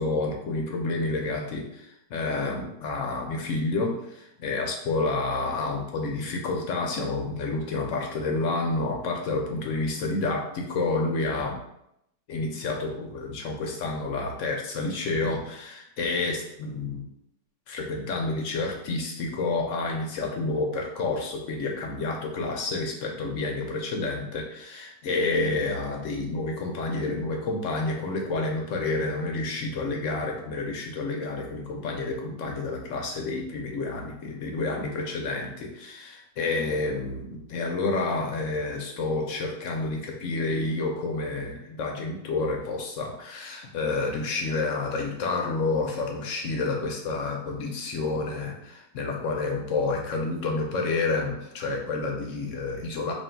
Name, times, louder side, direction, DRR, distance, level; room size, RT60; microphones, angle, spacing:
voice 1, 0.0-11.6 12.3-17.1 17.7-53.1, left 3 dB, 65° left, 1 dB, 0.8 m, -29 dB
3.0 x 2.6 x 4.3 m, 0.81 s
omnidirectional pair, 1.6 m